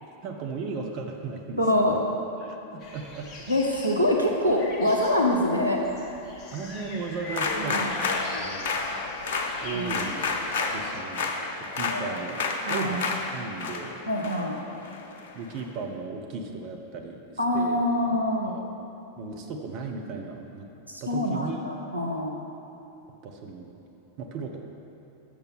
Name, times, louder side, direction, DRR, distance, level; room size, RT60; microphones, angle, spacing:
voice 1, 0.2-1.6 2.4-3.3 6.5-8.0 8.4-8.8 9.6-10.2 10.7-11.3 11.6-14.0 15.3-17.8 18.4-18.7 19.2-20.7 21.0-21.6 23.2-23.8 24.2-24.6, right 4 dB, 40° right, 2 dB, 0.8 m, -36 dB
voice 2, 1.6-2.0 3.5-6.2 7.6-7.9 9.7-10.0 11.9-12.2 12.6-13.0 14.1-14.5 17.4-18.5 20.9-22.4, left 1 dB, 90° right, 0 dB, 0.9 m, -25 dB
sound 1, 2.8-11.0, left 2 dB, 35° left, 1.0 m, -43 dB
sound 2, 7.3-15.6, left 4 dB, 55° left, 0.7 m, -31 dB
6.8 x 6.2 x 7.2 m, 3.0 s
figure-of-eight pair, 90°, 0 cm